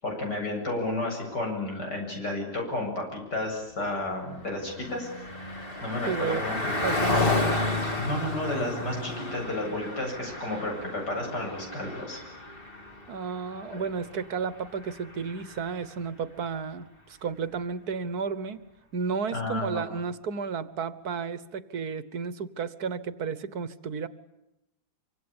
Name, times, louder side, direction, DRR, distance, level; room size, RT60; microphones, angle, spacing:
voice 1, 0.0-5.1 5.4-6.7 8.0-12.2 13.6-13.8 19.3-19.8, left 2 dB, 90° left, 2 dB, 8.7 m, -32 dB
Car passing by, 4.1-15.9, left 2 dB, 30° left, 3.5 m, -32 dB
voice 2, 6.1-6.4 6.8-7.3 13.1-18.6 18.9-24.1, right 6 dB, 65° right, 15 dB, 1.7 m, -32 dB
25.5 x 25.0 x 8.8 m, 0.88 s
omnidirectional pair, 1.8 m